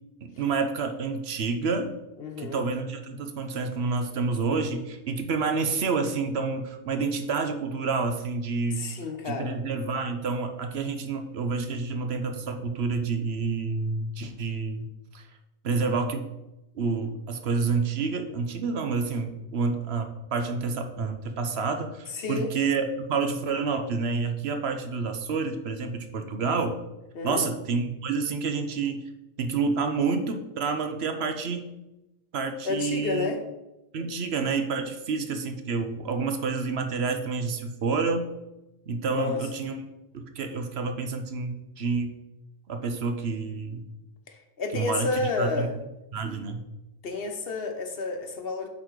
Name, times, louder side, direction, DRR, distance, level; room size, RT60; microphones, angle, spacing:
voice 1, 0.2-2.0 2.4-8.9 9.3-14.9 15.1-15.2 15.6-16.3 16.7-26.8 27.2-29.1 29.4-31.7 32.3-33.3 33.9-38.3 38.9-39.8 40.1-42.1 42.7-43.8 44.7-45.1 45.4-45.7 46.1-46.6, right 4 dB, 70° right, 6 dB, 1.0 m, -28 dB
voice 2, 2.2-2.6 8.8-9.6 22.1-22.5 27.1-27.5 32.6-33.4 39.1-39.4 44.3-45.7 47.0-48.7, left 3 dB, 60° left, 5 dB, 1.1 m, -30 dB
8.4 x 4.2 x 4.6 m, 0.95 s
omnidirectional pair, 1.1 m